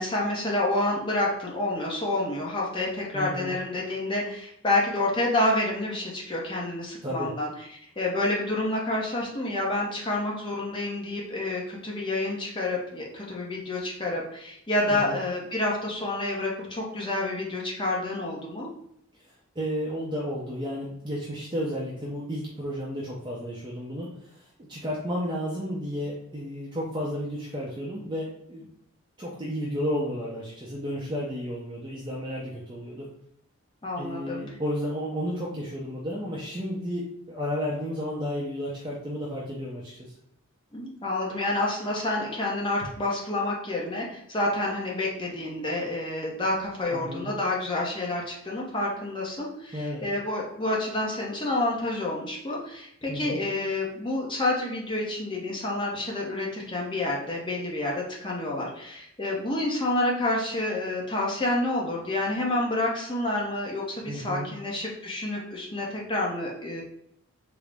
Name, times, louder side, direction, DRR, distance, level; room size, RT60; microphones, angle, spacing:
voice 1, 0.0-7.5 8.0-18.7 33.8-34.4 40.7-66.8, left 2 dB, 20° left, -3 dB, 0.6 m, -28 dB
voice 2, 3.1-3.6 7.0-7.3 14.9-15.1 19.6-28.7 29.2-33.1 34.0-40.1 46.9-47.3 49.7-50.0 53.1-53.4 64.0-64.5, equal, 20° right, -6 dB, 0.5 m, -32 dB
3.7 x 2.0 x 3.3 m, 0.75 s
head